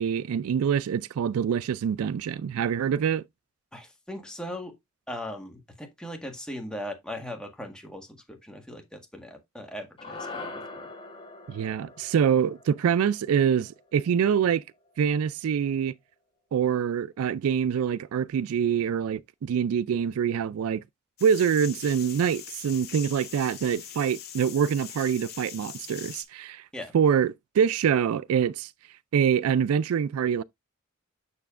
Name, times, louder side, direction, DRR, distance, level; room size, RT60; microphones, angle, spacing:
voice 1, 0.0-3.2 11.5-14.6 15.0-15.9 16.5-20.8 21.2-26.6 26.9-28.7 29.1-30.4, right 7 dB, 80° right, 0.3 m, -25 dB
voice 2, 3.7-4.8 5.1-10.9 26.7-26.9, left 1 dB, 5° left, 1.6 m, -39 dB
sound 1, 10.0-14.4, left 3 dB, 25° left, 3.0 m, -43 dB
sound 2, 21.2-26.2, left 9 dB, 50° left, 1.6 m, -42 dB
7.0 x 6.8 x 2.4 m
head